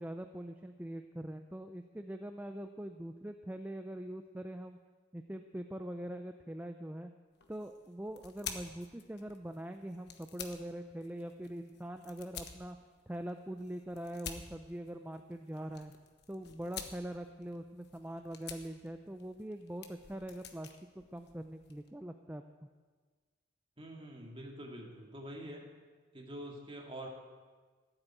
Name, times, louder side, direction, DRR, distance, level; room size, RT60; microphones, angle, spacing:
voice 1, 0.0-4.8 5.1-7.1 7.5-12.8 13.1-15.9 16.3-20.7 21.0-22.4, right 1 dB, 10° right, 6 dB, 0.4 m, -43 dB
sound 1, 7.3-21.9, left 7 dB, 55° left, 1.2 m, -50 dB
voice 2, 23.8-25.6 26.1-27.1, right 1 dB, 25° right, 0 dB, 2.2 m, -46 dB
14.0 x 8.1 x 9.0 m, 1.5 s
head